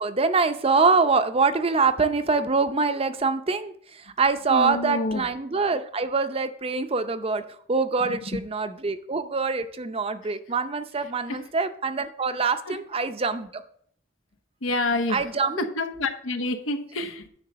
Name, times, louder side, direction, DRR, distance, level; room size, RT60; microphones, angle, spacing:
voice 1, 0.0-7.4 7.7-13.6 15.1-15.7, right 4 dB, 30° right, 0.6 m, -24 dB
voice 2, 4.5-5.2 8.0-8.4 11.3-11.5 12.7-12.8 14.6-15.3 15.6-17.3, left 2 dB, 90° left, 1.0 m, -28 dB
10.0 x 3.8 x 6.6 m
head